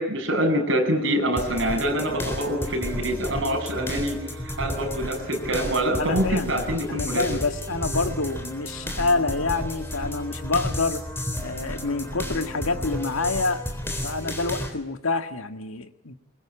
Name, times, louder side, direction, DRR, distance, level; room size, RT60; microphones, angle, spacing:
voice 1, 0.0-7.2, right 1 dB, 60° right, 2 dB, 7.4 m, -25 dB
sound 1, 1.4-14.7, equal, 10° left, 3.8 m, -32 dB
voice 2, 6.0-11.1 11.4-13.6 14.0-16.1, left 3 dB, 75° left, 8 dB, 1.9 m, -27 dB
23.0 x 22.5 x 8.9 m, 0.80 s
head